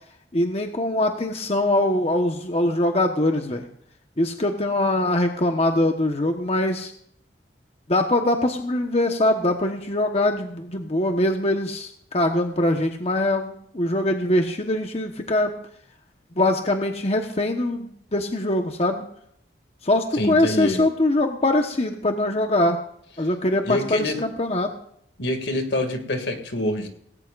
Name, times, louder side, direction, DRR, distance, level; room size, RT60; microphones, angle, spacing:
voice 1, 0.3-3.6 4.2-6.9 7.9-15.5 16.4-19.1 19.8-22.8 23.2-24.7, left 1 dB, 35° left, 4 dB, 1.2 m, -22 dB
voice 2, 20.1-20.8 23.6-24.2 25.2-26.9, left 1 dB, 80° left, 4 dB, 2.3 m, -26 dB
19.0 x 17.5 x 2.5 m, 0.67 s
head